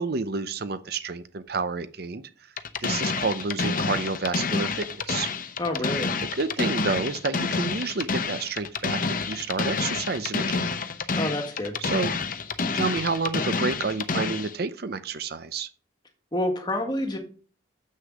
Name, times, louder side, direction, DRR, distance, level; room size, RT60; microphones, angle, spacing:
voice 1, 0.0-2.2 2.8-5.3 6.2-10.7 11.8-12.2 12.7-15.7, right 4 dB, 50° right, 12 dB, 0.6 m, -29 dB
sound 1, 2.6-14.5, left 4 dB, 45° left, 0.7 m, -28 dB
voice 2, 5.6-6.1 11.2-11.8 16.3-17.2, left 1 dB, 20° left, 4 dB, 1.7 m, -28 dB
7.6 x 6.5 x 6.2 m, 0.40 s
head